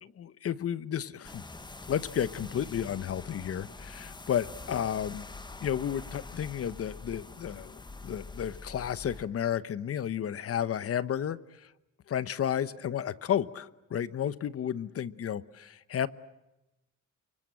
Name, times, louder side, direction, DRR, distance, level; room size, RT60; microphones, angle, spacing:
voice 1, 0.0-1.4 1.9-5.3 5.6-7.7 8.0-11.7 12.1-16.1, left 9 dB, 50° left, 16 dB, 1.0 m, -32 dB
sound 1, 1.2-9.2, left 3 dB, 15° left, 1.2 m, -45 dB
29.5 x 24.5 x 7.7 m, 0.97 s
cardioid pair, 150°, 31 cm